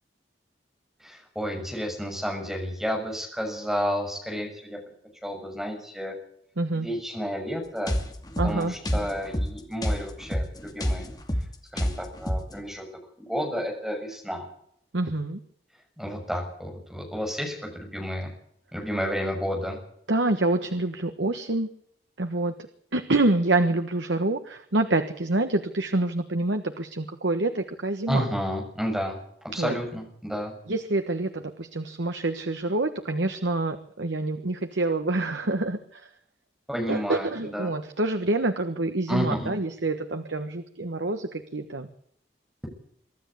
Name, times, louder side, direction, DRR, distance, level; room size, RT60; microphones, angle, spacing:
voice 1, 1.0-4.8 5.2-6.1 6.7-7.9 8.4-11.1 11.7-12.8 13.2-14.4 16.0-18.3 18.7-19.8 28.1-29.2 29.5-30.5 36.7-37.7 39.1-39.5, equal, ahead, 1 dB, 6.8 m, -31 dB
voice 2, 6.6-6.9 8.4-8.7 14.9-15.4 20.1-21.7 22.2-22.5 22.9-28.2 29.5-29.7 30.7-36.0 36.9-41.9, right 2 dB, 90° right, 7 dB, 1.4 m, -27 dB
sound 1, 7.9-12.6, equal, 20° left, 2.4 m, -29 dB
24.5 x 13.0 x 8.5 m, 0.69 s
head